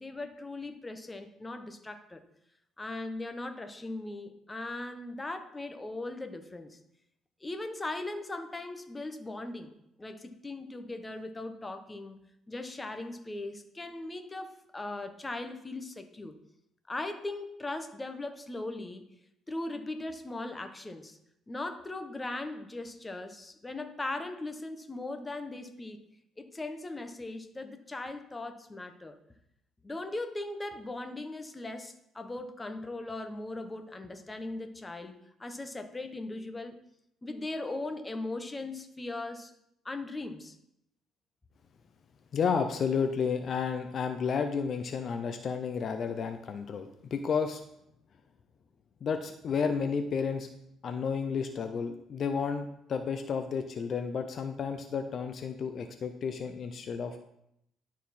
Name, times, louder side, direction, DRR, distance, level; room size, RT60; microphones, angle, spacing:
voice 1, 0.0-2.2 2.8-6.8 7.4-9.7 10.0-12.2 12.5-16.4 16.9-19.1 19.5-21.2 21.5-26.0 26.4-29.2 29.8-36.8 37.2-39.5 39.8-40.6, left 2 dB, 20° left, 7 dB, 0.9 m, -39 dB
voice 2, 42.3-47.6 49.0-50.5 50.8-57.2, left 6 dB, 50° left, 7 dB, 0.6 m, -32 dB
11.5 x 4.1 x 4.2 m, 0.78 s
cardioid pair, 95°, 0 cm